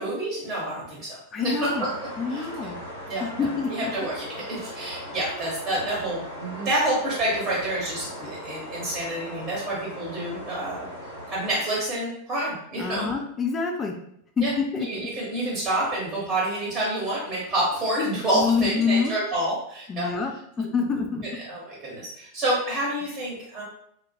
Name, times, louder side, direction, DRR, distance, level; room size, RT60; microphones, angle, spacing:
voice 1, 0.0-1.9 2.3-2.7 3.1-10.9 11.3-13.0 14.4-20.1 20.6-20.7 21.3-23.6, right 1 dB, 25° right, -5 dB, 0.9 m, -28 dB
voice 2, 1.3-1.9 2.2-2.8 3.2-3.9 12.8-14.0 14.4-14.9 18.3-19.1 19.9-20.3 20.6-21.2, left 5 dB, 20° left, 3 dB, 0.3 m, -26 dB
sound 1, 1.6-11.5, equal, 90° right, 1.0 m, -39 dB
2.2 x 2.1 x 2.7 m, 0.70 s
figure-of-eight pair, 90°, 0 cm